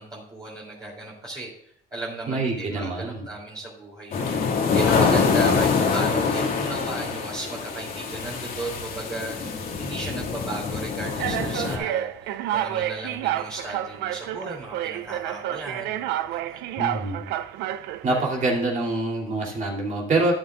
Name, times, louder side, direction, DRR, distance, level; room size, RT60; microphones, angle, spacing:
voice 1, 0.0-1.5 1.9-16.6, right 2 dB, 25° right, -6 dB, 3.2 m, -35 dB
voice 2, 2.3-3.2 16.8-17.2 18.0-20.3, right 2 dB, 50° right, -2 dB, 3.2 m, -25 dB
sound 1, 4.1-11.8, left 5 dB, 60° left, 2.2 m, -25 dB
sound 2, 8.2-8.7 9.4-9.6 10.5-10.6 11.2-18.5, right 12 dB, 85° right, 0.6 m, -30 dB
12.5 x 10.5 x 2.5 m, 0.68 s
cardioid pair, 110°, 17 cm